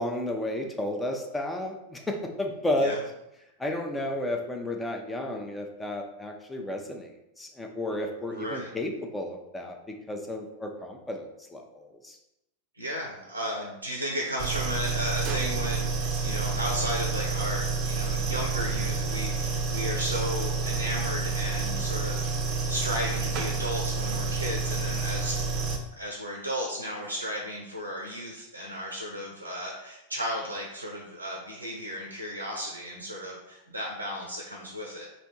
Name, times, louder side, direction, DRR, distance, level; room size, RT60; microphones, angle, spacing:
voice 1, 0.0-3.0 3.6-7.1 7.4-11.3 11.5-12.2, left 1 dB, 10° left, 3 dB, 0.6 m, -32 dB
voice 2, 8.3-8.7 12.7-25.3 26.0-35.1, equal, 85° right, -1 dB, 0.6 m, -34 dB
sound 1, 14.4-25.8, right 4 dB, 35° right, 0.6 m, -29 dB
3.4 x 2.7 x 4.2 m, 0.88 s
figure-of-eight pair, 90°, 0 cm